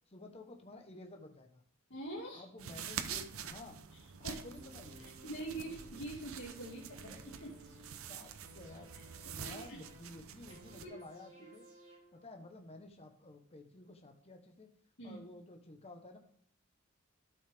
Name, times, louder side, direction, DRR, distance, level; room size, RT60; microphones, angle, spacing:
voice 1, 0.1-1.6 2.3-3.8 4.2-5.1 6.9-7.2 8.1-8.9 9.2-11.7 12.1-14.7 15.0-16.2, left 2 dB, 30° left, 4 dB, 1.1 m, -52 dB
voice 2, 1.9-2.4 4.2-4.4 5.2-7.1 7.4-7.5 9.4-9.8 10.8-10.9 11.4-11.5 15.0-15.2, right 1 dB, 60° left, -5 dB, 2.2 m, -44 dB
sound 1, 2.6-10.9, right 7 dB, 85° right, 0.7 m, -46 dB
sound 2, 4.5-12.5 12.8-12.9, right 1 dB, 35° right, 4.1 m, -59 dB
12.5 x 6.3 x 3.5 m, 0.64 s
head